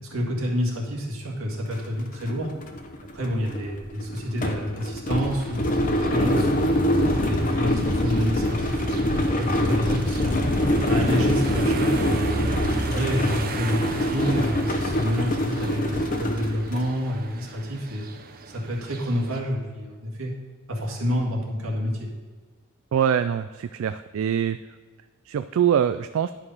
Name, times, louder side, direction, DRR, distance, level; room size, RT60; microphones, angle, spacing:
voice 1, 0.0-2.5 3.1-6.7 7.2-9.1 9.4-10.4 10.9-12.4 12.8-18.0 18.5-20.3 20.7-22.1, equal, 90° right, -1 dB, 1.9 m, -28 dB
sound 1, 1.7-1.8 2.1-16.9, left 1 dB, 40° left, 0.8 m, -25 dB
sound 2, 5.2-19.4, right 3 dB, 45° right, 0.7 m, -36 dB
voice 2, 22.9-24.6 25.3-26.3, right 8 dB, 75° right, 12 dB, 0.3 m, -23 dB
11.0 x 4.9 x 5.5 m, 1.4 s
head